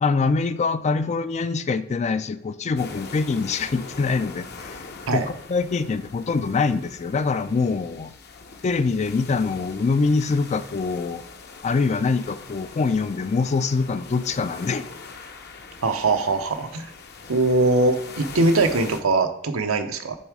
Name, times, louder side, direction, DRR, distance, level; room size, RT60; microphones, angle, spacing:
voice 1, 0.0-4.8 5.1-5.2 5.5-8.1 8.6-11.2 11.6-14.9, left 4 dB, 35° left, 13 dB, 0.3 m, -24 dB
sound 1, 2.8-19.0, left 4 dB, 50° left, 0.8 m, -42 dB
voice 2, 15.8-16.9 17.3-20.2, right 2 dB, 85° right, 7 dB, 0.8 m, -21 dB
7.1 x 3.6 x 4.7 m, 0.78 s
head